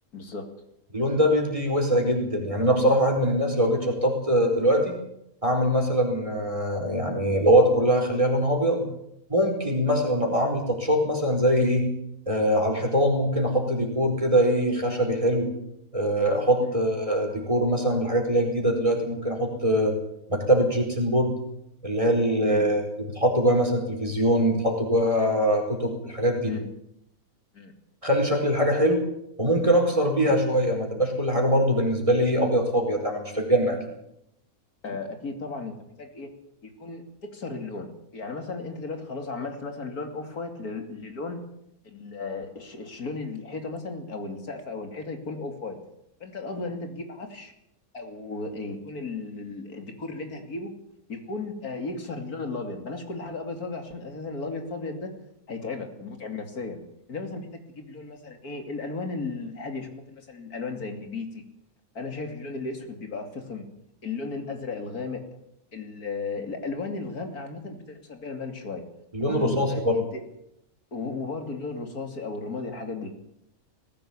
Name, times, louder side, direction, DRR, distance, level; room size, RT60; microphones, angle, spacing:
voice 1, 0.1-0.5 16.6-16.8 22.4-22.7 26.5-26.7 27.5-27.7 30.2-30.4 34.8-36.3 36.6-41.4 41.8-45.8 46.2-47.5 47.9-50.7 51.1-55.1 55.5-56.8 57.1-61.4 61.9-63.7 64.0-65.2 65.7-68.8 69.2-70.3 70.9-73.1, left 3 dB, 85° left, 5 dB, 3.2 m, -35 dB
voice 2, 0.9-4.9 5.4-8.9 9.3-11.9 12.3-15.5 15.9-19.9 20.3-21.3 21.8-22.8 23.1-26.5 28.0-29.0 29.4-33.8 69.1-69.9, equal, 20° right, 2 dB, 4.7 m, -23 dB
19.0 x 16.0 x 8.7 m, 0.78 s
omnidirectional pair, 1.6 m